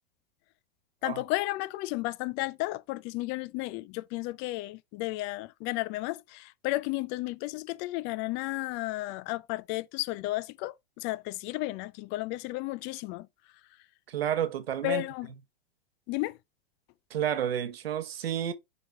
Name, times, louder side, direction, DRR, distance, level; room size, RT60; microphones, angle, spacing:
voice 1, 1.0-13.3 14.8-15.3 16.1-16.4, left 19 dB, 35° left, 0.5 m, -33 dB
voice 2, 14.1-15.0 17.1-18.5, right 10 dB, 75° right, 1.2 m, -30 dB
6.9 x 4.4 x 3.4 m
hypercardioid pair, 105°, 30 cm